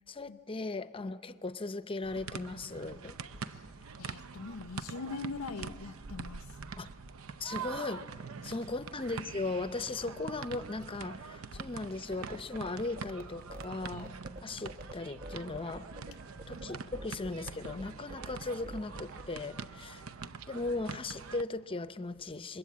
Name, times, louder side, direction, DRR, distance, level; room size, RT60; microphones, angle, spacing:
voice 1, 0.1-3.2 6.8-6.9 7.4-8.0 8.4-14.1 14.4-15.8 16.5-20.0 20.5-22.6, left 3 dB, 25° left, 0.6 m, -37 dB
sound 1, 2.0-21.4, right 5 dB, 75° right, 0.6 m, -44 dB
voice 2, 3.4-3.7 4.0-6.5 8.4-8.7, left 3 dB, 85° left, 0.6 m, -42 dB
sound 2, 12.1-19.4, right 1 dB, 45° right, 1.0 m, -45 dB
28.5 x 21.5 x 8.5 m
head